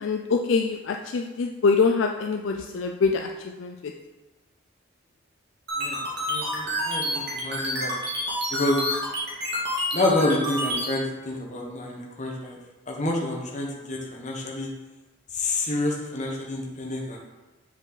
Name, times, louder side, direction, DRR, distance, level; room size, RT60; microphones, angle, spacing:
voice 1, 0.0-3.3 3.6-3.7, left 4 dB, 60° left, 3 dB, 0.4 m, -24 dB
sound 1, 5.7-10.9, equal, 50° right, 2.0 m, -28 dB
voice 2, 6.3-7.9 8.5-8.8 9.9-12.6 12.9-14.7 15.3-17.2, left 2 dB, 35° left, -1 dB, 1.1 m, -28 dB
7.0 x 4.5 x 4.0 m, 1.2 s
head